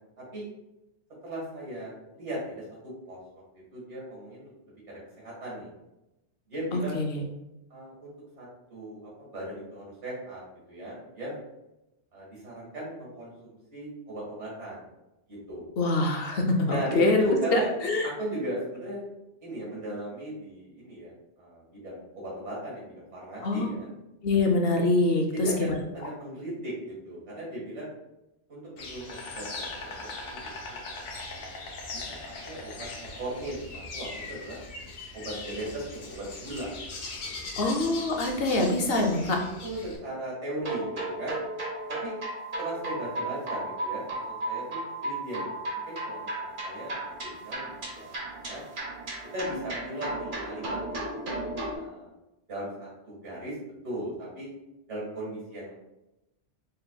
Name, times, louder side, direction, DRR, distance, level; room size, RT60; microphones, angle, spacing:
voice 1, 1.2-3.2 3.7-4.5 4.9-5.7 6.5-7.0 7.7-10.4 10.7-11.4 12.1-13.3 13.7-14.8 15.3-15.7 16.7-17.7 18.0-19.0 19.4-21.1 21.4-23.9 25.3-25.7 25.9-27.9 28.5-31.6 31.9-34.6 35.1-36.7 37.6-37.7 39.6-41.4 41.9-42.2 42.6-45.5 45.9-48.1 48.4-48.6 49.3-51.1 51.7-52.1 52.5-53.6 53.8-54.5 54.9-55.7, right 1 dB, 80° right, -5 dB, 2.0 m, -37 dB
voice 2, 6.7-7.2 15.8-17.2 17.5-18.1 23.4-23.7 24.2-25.3 37.6-39.4, left 2 dB, 60° left, 3 dB, 0.8 m, -25 dB
Insect, 28.8-40.0, left 3 dB, 85° left, 1.1 m, -40 dB
sound 1, 40.6-51.7, right 2 dB, 50° right, 1.0 m, -35 dB
4.2 x 3.8 x 2.2 m, 0.93 s
omnidirectional pair, 1.2 m